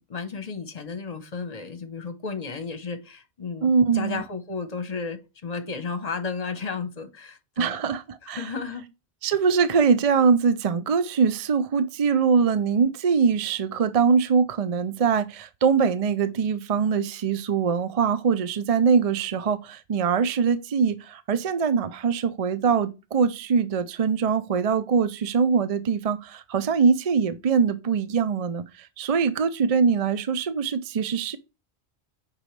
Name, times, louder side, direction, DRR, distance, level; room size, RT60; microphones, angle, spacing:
voice 1, 0.0-7.9 8.2-8.8, left 5 dB, 40° left, 1.1 m, -33 dB
voice 2, 3.6-4.2 7.6-8.5 9.2-31.4, right 6 dB, 50° right, 0.5 m, -23 dB
8.2 x 5.4 x 3.2 m
omnidirectional pair, 1.1 m